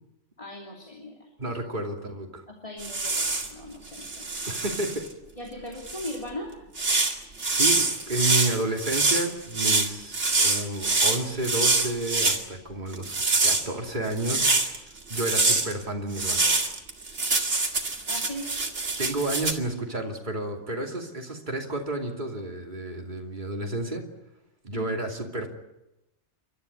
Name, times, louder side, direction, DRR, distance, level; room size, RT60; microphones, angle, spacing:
voice 1, 0.4-1.6 2.5-4.2 5.4-6.5 18.1-18.5 24.7-24.9, left 1 dB, 30° left, 0 dB, 3.0 m, -39 dB
voice 2, 1.4-2.4 4.5-5.0 7.5-13.1 13.4-14.5 15.1-16.6 19.0-24.0 24.6-25.5, right 2 dB, 40° right, 1 dB, 3.0 m, -31 dB
sound 1, 2.8-3.5 3.9-5.1 5.9-6.1 6.8-12.4 12.9-14.8 15.1-15.7 16.1-19.5, right 3 dB, 80° right, 2.7 m, -25 dB
29.5 x 13.5 x 9.6 m, 0.95 s
omnidirectional pair, 1.2 m